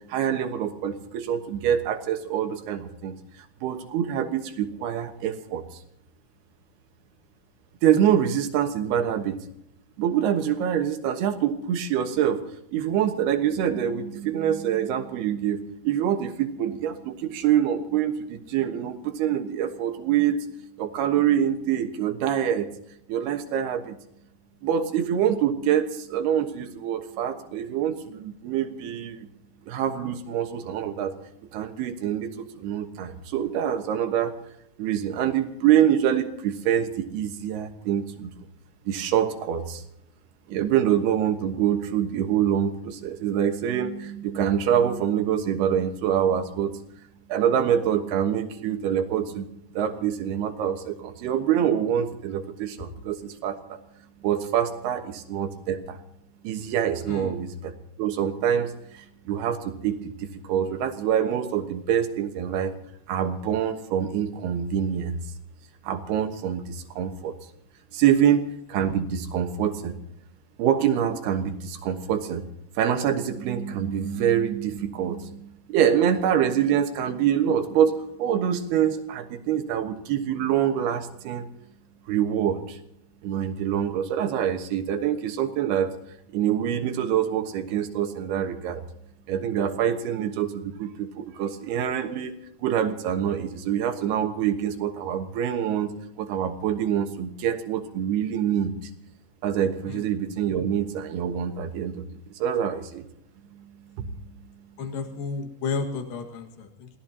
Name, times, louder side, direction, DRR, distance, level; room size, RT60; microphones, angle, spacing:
voice 1, 0.1-3.2 3.6-5.6 7.8-9.4 10.0-12.5 12.7-20.5 20.8-22.7 23.1-24.0 24.6-29.3 29.7-31.2 31.5-34.4 34.8-38.3 38.9-39.8 40.5-46.8 47.3-49.5 49.7-53.8 54.2-56.0 56.4-57.7 58.0-62.7 63.1-65.2 65.8-67.4 67.9-70.0 70.6-72.5 72.8-81.5 82.1-82.8 83.2-85.9 86.3-88.8 89.3-92.4 92.6-98.7 99.4-102.0 102.4-103.0 104.0-104.1, right 9 dB, 85° right, 6 dB, 3.4 m, -25 dB
voice 2, 104.8-106.9, left 4 dB, 65° left, 4 dB, 3.4 m, -32 dB
27.0 x 17.5 x 2.9 m, 0.78 s
omnidirectional pair, 4.5 m